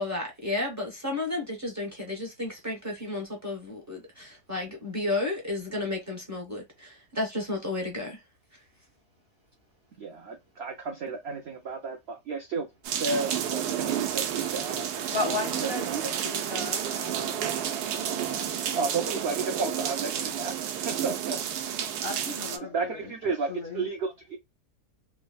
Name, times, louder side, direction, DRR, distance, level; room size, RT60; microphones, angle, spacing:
voice 1, 0.0-8.2 18.6-18.7, left 2 dB, 15° right, 0.6 m, -32 dB
voice 2, 10.0-12.7 13.0-14.8 15.6-16.1 18.7-20.5 20.8-21.4 22.6-24.4, right 4 dB, 75° right, 0.6 m, -32 dB
sound 1, 12.8-22.6, right 9 dB, 90° right, 1.1 m, -31 dB
voice 3, 15.1-15.9 16.2-17.4 22.0-23.1 23.5-23.9, left 3 dB, 55° left, 0.7 m, -35 dB
3.3 x 2.0 x 2.3 m
omnidirectional pair, 1.7 m